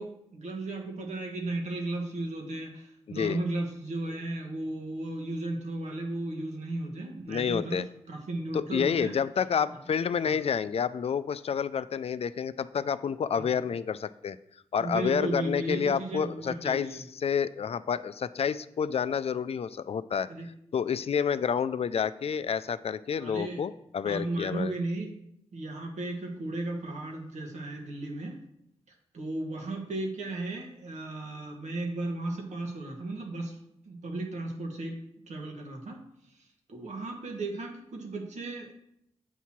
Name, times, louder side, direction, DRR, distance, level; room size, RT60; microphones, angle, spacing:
voice 1, 0.0-7.8 8.1-9.1 9.7-9.8 10.2-10.4 13.4-13.6 14.8-17.0 20.3-20.5 23.2-23.6 24.0-25.1 25.5-28.4 29.1-33.6 33.8-35.0 35.3-36.0 36.2-38.7, right 2 dB, 80° right, 1 dB, 1.4 m, -35 dB
voice 2, 3.1-3.4 7.3-7.9 8.5-14.4 14.7-20.3 20.7-24.7, left 7 dB, 60° left, 15 dB, 0.4 m, -29 dB
8.1 x 2.8 x 6.0 m, 0.76 s
cardioid pair, 45°, 12 cm